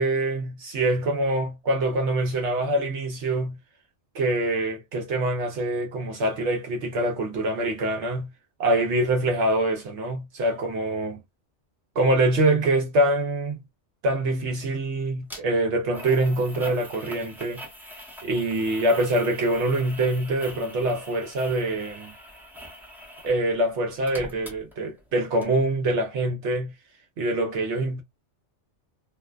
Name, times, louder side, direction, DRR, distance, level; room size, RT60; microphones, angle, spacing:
voice 1, 0.0-3.6 4.1-8.3 8.6-11.2 12.0-13.6 14.0-17.6 18.2-22.1 23.2-26.7 27.2-28.0, right 1 dB, 75° right, 0.9 m, -24 dB
sound 1, 15.3-15.4 15.9-23.4 23.7-25.1 25.4-25.5, equal, ahead, 0.5 m, -43 dB
2.5 x 2.2 x 2.2 m
omnidirectional pair, 1.2 m